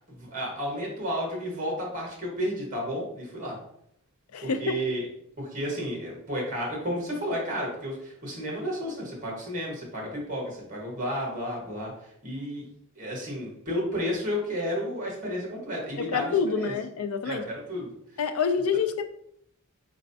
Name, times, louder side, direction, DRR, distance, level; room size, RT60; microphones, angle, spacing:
voice 1, 0.1-3.6 4.4-5.0 5.4-11.9 12.2-12.6 12.9-16.7 17.2-17.9, equal, 40° right, -2 dB, 1.4 m, -32 dB
voice 2, 4.3-4.8 16.0-17.4 18.2-19.0, left 5 dB, 85° left, 9 dB, 0.4 m, -27 dB
4.3 x 3.1 x 2.7 m, 0.72 s
head